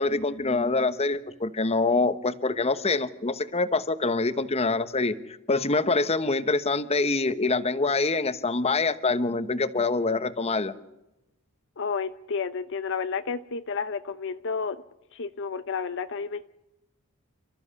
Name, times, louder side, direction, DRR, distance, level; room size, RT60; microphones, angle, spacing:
voice 1, 0.0-5.1 5.5-10.7, left 3 dB, 30° left, 12 dB, 1.1 m, -25 dB
voice 2, 11.8-14.8 15.1-16.5, left 5 dB, 60° left, 11 dB, 0.7 m, -31 dB
29.5 x 13.5 x 8.5 m, 0.94 s
head